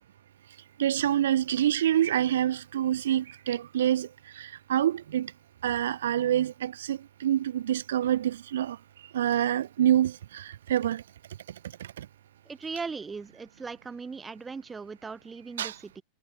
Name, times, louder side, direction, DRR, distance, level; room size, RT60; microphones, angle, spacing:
voice 1, 0.8-4.1 4.3-5.3 5.6-8.8 9.1-11.0 11.8-12.1 15.6-15.8, right 11 dB, 85° right, 1.9 m, -26 dB
voice 2, 12.4-16.0, right 4 dB, 15° right, 3.4 m, -39 dB
supercardioid pair, 135°, 0 cm